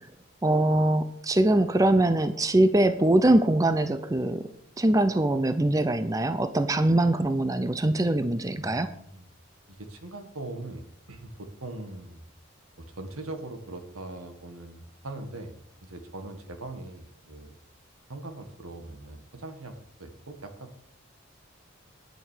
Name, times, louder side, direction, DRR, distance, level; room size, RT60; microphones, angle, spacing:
voice 1, 0.4-4.5 4.8-8.9, right 1 dB, 15° right, 11 dB, 0.5 m, -23 dB
voice 2, 8.6-9.3 9.7-12.2 12.8-15.5 15.8-17.6 18.1-20.7, right 2 dB, 85° right, 6 dB, 1.8 m, -41 dB
10.0 x 7.4 x 6.6 m, 0.71 s
head